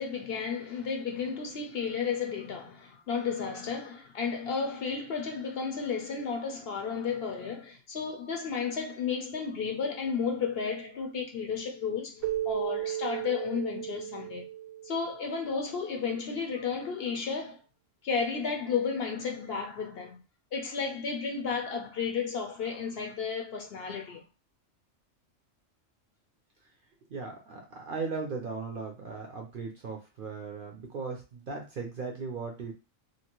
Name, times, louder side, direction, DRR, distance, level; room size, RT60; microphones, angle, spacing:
voice 1, 0.0-14.5 14.8-17.6 18.0-20.2 20.5-24.2, left 5 dB, 60° left, 0.7 m, -33 dB
Keyboard (musical), 12.2-15.4, right 12 dB, 75° right, 1.0 m, -35 dB
voice 2, 27.1-32.7, right 4 dB, 55° right, 0.6 m, -37 dB
2.9 x 2.5 x 2.9 m
omnidirectional pair, 1.3 m